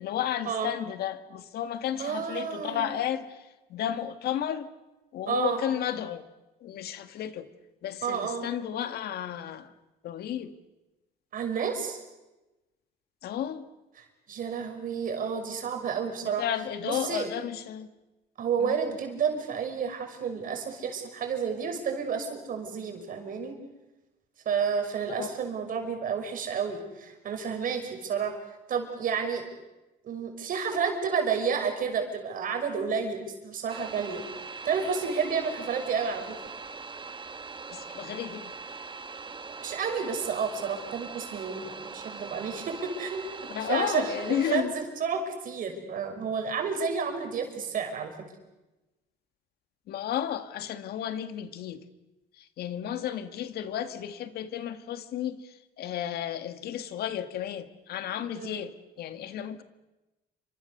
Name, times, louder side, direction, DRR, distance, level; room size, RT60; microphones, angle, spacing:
voice 1, 0.0-4.7 5.1-6.2 6.6-7.5 7.8-9.7 10.0-10.5 13.2-13.7 16.2-17.9 18.6-18.8 25.2-25.3 37.7-38.5 43.5-44.7 49.9-51.8 52.4-59.6, left 10 dB, 70° left, 10 dB, 1.9 m, -33 dB
voice 2, 2.0-3.0 5.3-5.6 8.0-8.5 11.3-12.0 14.0-16.4 16.8-17.3 18.4-23.5 24.4-28.4 28.7-29.5 30.0-34.2 34.6-36.4 39.6-43.2 43.6-48.1 58.3-58.6, right 6 dB, 55° right, 4 dB, 6.1 m, -31 dB
sound 1, 33.7-44.6, right 4 dB, 30° right, 1.6 m, -41 dB
29.0 x 25.5 x 6.8 m, 1.1 s
cardioid pair, 110°, 17 cm